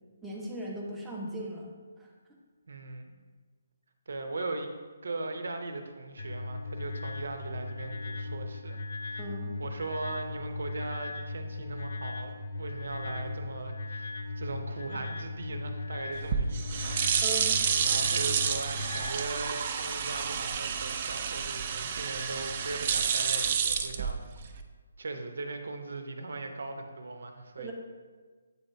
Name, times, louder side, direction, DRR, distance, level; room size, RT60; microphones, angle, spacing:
voice 1, 0.2-1.7 9.2-9.6 17.2-17.6 27.6-27.7, right 1 dB, 5° right, -4 dB, 0.7 m, -38 dB
voice 2, 2.7-3.1 4.1-4.7 5.0-8.8 9.1-9.3 9.6-17.3 17.7-24.5 25.0-27.7, right 3 dB, 70° right, 5 dB, 0.8 m, -39 dB
sound 1, 6.2-19.1, left 2 dB, 50° left, 0.7 m, -38 dB
sound 2, 16.1-24.6, right 7 dB, 35° right, 0.4 m, -30 dB
8.3 x 2.8 x 4.4 m, 1.4 s
hypercardioid pair, 165°, 0 cm